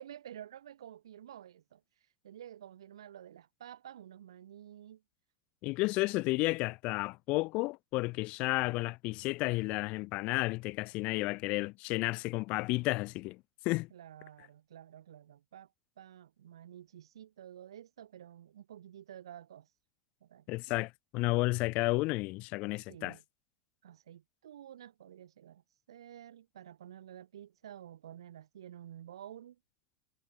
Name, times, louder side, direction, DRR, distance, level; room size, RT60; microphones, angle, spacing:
voice 1, 0.0-1.8 2.2-5.0 13.9-15.7 16.0-19.7 20.2-20.5 22.9-23.2 23.8-29.6, right 10 dB, 65° right, 2.3 m, -50 dB
voice 2, 5.6-13.9 20.5-23.2, left 23 dB, 45° left, 0.4 m, -32 dB
figure-of-eight pair, 85°, 3 cm